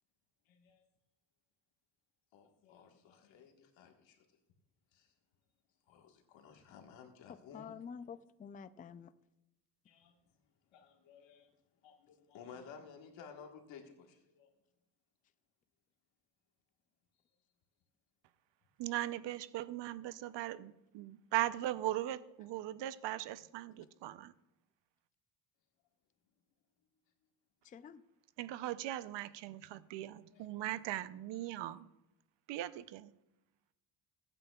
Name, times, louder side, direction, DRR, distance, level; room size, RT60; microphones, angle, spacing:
voice 1, 0.5-0.8 2.3-4.2 4.9-5.1 5.9-7.7 9.8-10.2 10.7-11.5 11.8-14.5 30.3-30.5, left 6 dB, 85° left, 3 dB, 1.6 m, -55 dB
voice 2, 7.5-9.1 27.6-28.0, left 6 dB, 20° left, 14 dB, 0.3 m, -48 dB
voice 3, 18.8-24.3 28.4-31.9 32.5-33.1, right 14 dB, 70° right, 15 dB, 0.7 m, -39 dB
20.5 x 9.0 x 2.3 m, 0.93 s
cardioid pair, 110°, 44 cm